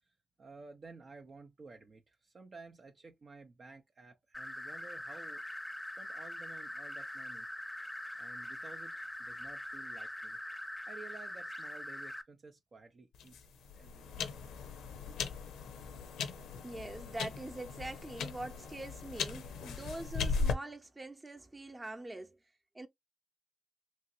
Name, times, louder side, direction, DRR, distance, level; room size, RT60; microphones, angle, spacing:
voice 1, 0.4-5.4 6.0-7.5 8.2-10.4 10.8-13.4 13.8-14.3, right 4 dB, 50° right, 0.5 m, -53 dB
sound 1, 4.3-12.2, left 1 dB, 10° left, 0.7 m, -43 dB
sound 2, 13.1-20.5, left 5 dB, 85° left, 0.5 m, -38 dB
voice 2, 16.6-22.4 22.7-22.9, right 2 dB, 25° right, 0.8 m, -44 dB
2.9 x 2.8 x 2.6 m
supercardioid pair, 55°, 0 cm